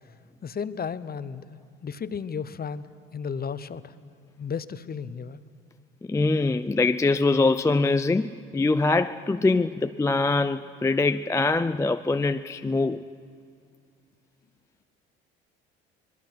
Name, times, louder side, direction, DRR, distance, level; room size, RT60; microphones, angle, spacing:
voice 1, 0.4-2.8 3.1-3.9 4.4-5.4, left 6 dB, 30° left, 0.9 m, -34 dB
voice 2, 6.1-13.0, left 3 dB, 10° left, 0.4 m, -23 dB
24.0 x 20.0 x 6.0 m
hypercardioid pair, 65°, 29 cm